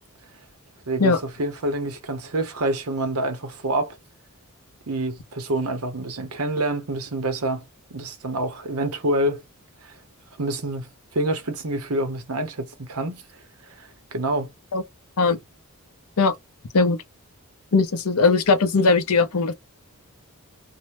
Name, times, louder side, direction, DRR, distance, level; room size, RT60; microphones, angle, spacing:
voice 1, 0.9-4.0 4.9-7.6 7.9-9.4 9.8-9.9 10.4-10.9 11.1-13.2 13.7-14.5, right 1 dB, 75° right, 0.9 m, -27 dB
voice 2, 17.7-19.5, left 4 dB, 75° left, 0.7 m, -19 dB
2.7 x 2.1 x 3.0 m
head